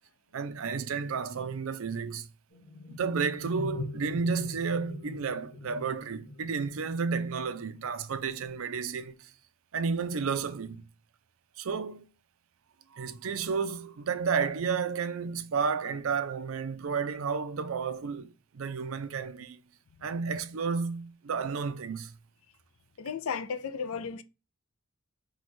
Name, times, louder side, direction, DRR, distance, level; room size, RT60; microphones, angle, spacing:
voice 1, 0.3-2.3 2.9-9.3 9.7-10.9 11.6-12.1 12.9-19.6 20.0-22.1, right 5 dB, 70° right, 0.5 m, -32 dB
sound 1, 2.5-7.8, left 1 dB, 40° left, 2.4 m, -42 dB
voice 2, 23.0-24.2, left 6 dB, 70° left, 0.4 m, -34 dB
4.6 x 2.3 x 4.1 m
head